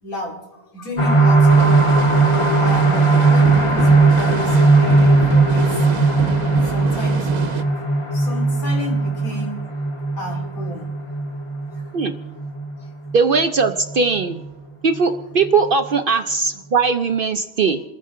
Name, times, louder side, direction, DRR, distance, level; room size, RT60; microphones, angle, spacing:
voice 1, 0.0-1.8 2.6-5.9 6.6-7.8 8.1-9.6 10.2-10.9 11.7-11.8 12.8-12.9, left 1 dB, 90° left, 0 dB, 3.0 m, -32 dB
sound 1, 1.0-14.5 14.9-15.0 15.4-15.5, right 3 dB, 25° left, 0.9 m, -17 dB
sound 2, 1.5-7.6, right 7 dB, 85° right, 1.2 m, -27 dB
voice 2, 13.1-14.4 14.8-17.8, right 4 dB, 55° right, 7 dB, 0.6 m, -19 dB
28.0 x 10.0 x 3.7 m, 1.1 s
omnidirectional pair, 1.5 m